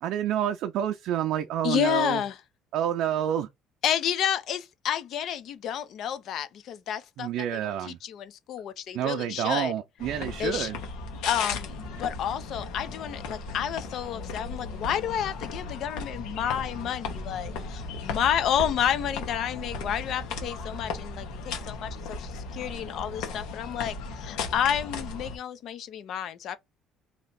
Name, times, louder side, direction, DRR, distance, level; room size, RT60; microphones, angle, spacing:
voice 1, 0.0-2.2 2.7-3.5 7.2-8.0 8.9-10.8, right 10 dB, 60° right, 0.5 m, -28 dB
voice 2, 1.6-2.3 3.8-9.7 10.4-10.7 11.3-26.6, left 9 dB, 50° left, 0.6 m, -30 dB
sound 1, 10.0-25.4, left 4 dB, 90° left, 1.3 m, -36 dB
3.2 x 2.9 x 4.1 m
cardioid pair, 170°, 0 cm